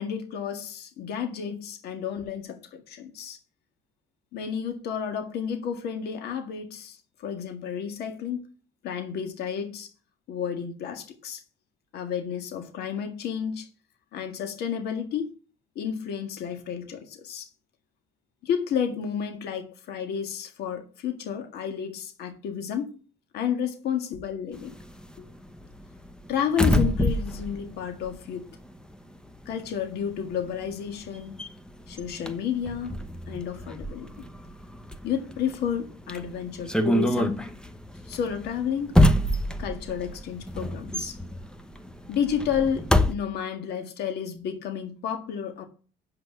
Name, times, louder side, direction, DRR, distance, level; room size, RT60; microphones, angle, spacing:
voice 1, 0.0-3.4 4.3-8.5 8.8-9.9 10.3-11.4 11.9-13.7 14.1-15.3 15.8-17.5 18.4-23.0 23.3-24.8 26.3-28.5 29.5-31.4 31.9-33.0 33.3-34.1 35.0-37.4 38.1-39.0 39.6-41.2 42.1-45.6, left 8 dB, 70° left, 1.8 m, -31 dB
sound 1, 24.5-28.9 29.2-43.1, left 1 dB, 5° left, 0.9 m, -27 dB
8.0 x 6.0 x 6.8 m
cardioid pair, 110°, 17 cm